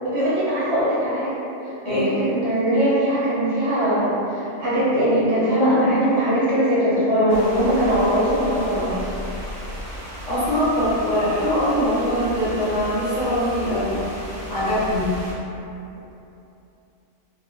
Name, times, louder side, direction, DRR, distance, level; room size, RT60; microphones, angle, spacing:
voice 1, 0.0-1.4 1.8-9.0, equal, 60° right, -10 dB, 0.8 m, -20 dB
sound 1, 7.3-15.3, equal, 25° right, 0.4 m, -35 dB
voice 2, 10.2-13.9 14.5-15.1, equal, 70° left, -12 dB, 1.0 m, -22 dB
2.4 x 2.1 x 2.6 m, 2.8 s
omnidirectional pair, 1.4 m